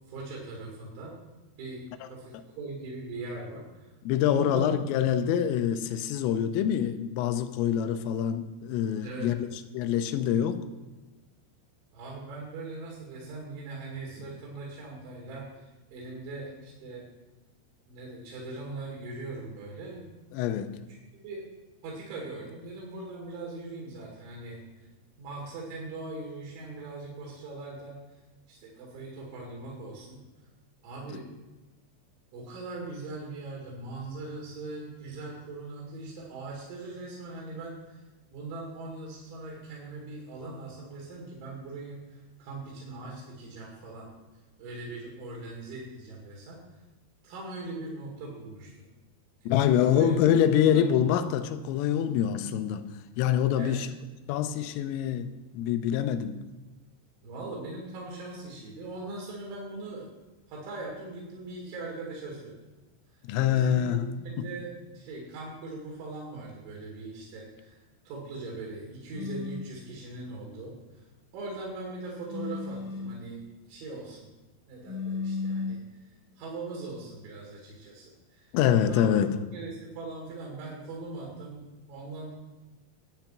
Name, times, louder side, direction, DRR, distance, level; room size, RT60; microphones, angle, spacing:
voice 1, 0.1-1.1 1.6-3.9 4.3-4.7 9.0-9.4 11.9-17.1 17.9-20.1 21.2-21.4 21.8-24.9 25.2-28.2 28.5-30.2 30.8-31.3 32.3-38.0 38.3-44.1 44.6-46.6 47.2-48.7 49.9-50.3 50.6-50.9 53.5-53.9 57.2-60.1 60.5-62.6 63.5-71.1 71.3-73.4 73.7-74.3 74.7-76.1 76.4-78.6 78.8-79.2 79.5-82.4, right 3 dB, 70° right, 4.6 m, -40 dB
voice 2, 4.1-9.3 9.7-10.6 20.3-20.7 49.5-52.9 53.2-53.9 54.3-56.4 63.2-64.1 64.4-64.5 78.5-79.3, left 9 dB, 85° left, 3.3 m, -25 dB
sound 1, 69.1-69.7 72.2-73.2 74.8-75.9, left 4 dB, 55° left, 3.4 m, -34 dB
11.5 x 8.9 x 5.9 m
omnidirectional pair, 5.8 m